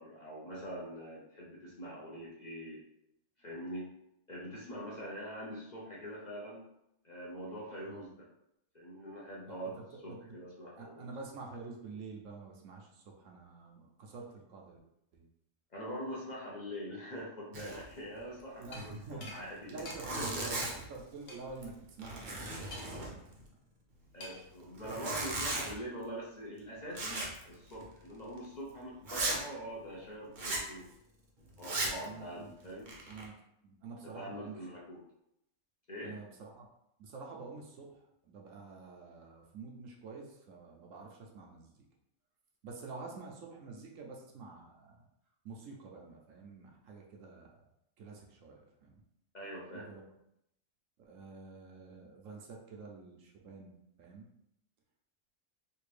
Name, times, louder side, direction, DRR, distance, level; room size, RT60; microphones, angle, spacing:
voice 1, 0.0-2.8 3.4-3.9 4.3-6.7 7.0-8.2 8.7-11.1 15.7-20.6 24.1-30.9 31.6-33.0 34.0-35.0 35.9-36.2 49.3-49.9, equal, 40° left, -5 dB, 0.7 m, -44 dB
voice 2, 9.5-10.4 10.8-14.8 15.1-15.2 18.6-19.3 19.7-23.3 32.0-32.5 33.1-33.3 33.6-34.5 36.0-36.7 37.0-37.9 38.2-41.7 42.6-44.9 45.4-47.5 48.0-48.9 49.7-50.0 51.1-53.7 54.0-54.3, right 4 dB, 75° right, 0 dB, 1.1 m, -48 dB
Zipper (clothing), 17.5-17.9 18.2-18.3 18.6-18.7 19.4-19.5 19.7-21.0 21.5-21.7 22.0-23.4 24.8-25.8 26.9-27.4 27.7-27.9 28.4-28.5 29.1-29.4 30.4-30.7 31.6-32.0 32.6-33.2, right 2 dB, 45° right, 0.7 m, -37 dB
sound 1, 18.7-18.8 19.2-19.4 19.8-20.0 20.6-20.8 21.3-21.4 22.7-23.1 24.2-24.5, left 2 dB, 75° left, 1.2 m, -46 dB
3.4 x 2.6 x 3.2 m, 0.80 s
omnidirectional pair, 1.4 m